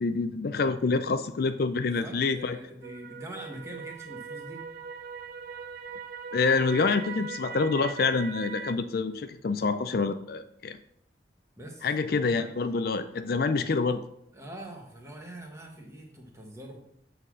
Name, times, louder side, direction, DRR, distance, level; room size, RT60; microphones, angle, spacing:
voice 1, 0.0-2.6 6.3-10.8 11.8-14.0, left 4 dB, 50° left, 10 dB, 0.4 m, -27 dB
voice 2, 1.7-4.7 11.6-12.5 14.3-16.8, right 1 dB, 15° right, 1 dB, 1.3 m, -44 dB
sound 1, 2.8-8.7, right 5 dB, 50° right, 0.5 m, -40 dB
7.6 x 4.0 x 6.2 m, 0.73 s
head